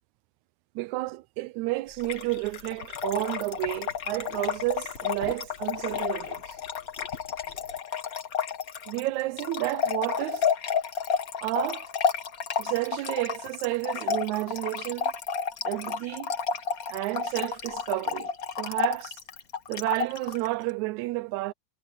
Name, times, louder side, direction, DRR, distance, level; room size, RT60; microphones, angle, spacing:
voice 1, 0.8-6.6 8.9-10.5 11.4-11.9 12.6-15.1 15.7-16.3 16.9-18.3 18.6-19.2 19.7-21.5, right 19 dB, 80° right, 1.9 m, -31 dB
Trickle dribble / Fill (with liquid), 2.0-20.5, left 6 dB, 65° left, 0.8 m, -31 dB
sound 1, 2.3-7.8, left 3 dB, 40° left, 3.6 m, -48 dB
omnidirectional pair, 3.4 m